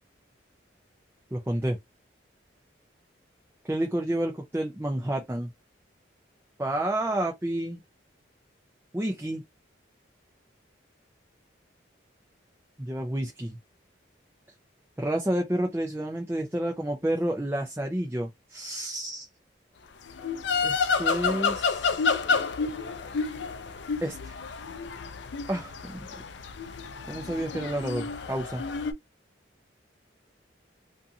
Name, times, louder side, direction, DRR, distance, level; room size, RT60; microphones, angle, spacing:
voice 1, 1.3-1.8 3.6-5.5 6.6-7.8 8.9-9.4 12.8-13.6 15.0-19.3 20.6-22.1 24.0-24.4 25.5-26.1 27.1-28.6, right 1 dB, 10° right, 0.4 m, -30 dB
sound 1, 20.1-28.9, left 5 dB, 65° left, 0.4 m, -29 dB
2.6 x 2.4 x 2.6 m
head